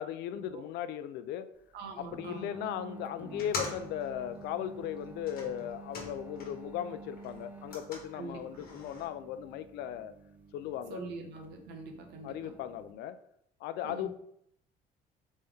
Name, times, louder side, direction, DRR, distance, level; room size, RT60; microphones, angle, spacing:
voice 1, 0.0-1.5 2.0-10.1 10.5-11.0 12.2-13.2 13.6-14.1, left 10 dB, 80° left, 12 dB, 0.4 m, -37 dB
voice 2, 1.7-2.6 8.1-8.6 10.9-12.5 13.8-14.1, right 3 dB, 80° right, 4 dB, 1.0 m, -44 dB
sound 1, 2.1-12.9, right 4 dB, 10° right, 0.4 m, -50 dB
sound 2, 3.3-6.7 7.0-9.1, left 3 dB, 60° left, 1.2 m, -44 dB
4.0 x 3.6 x 3.4 m, 0.74 s
cardioid pair, 110°, 17 cm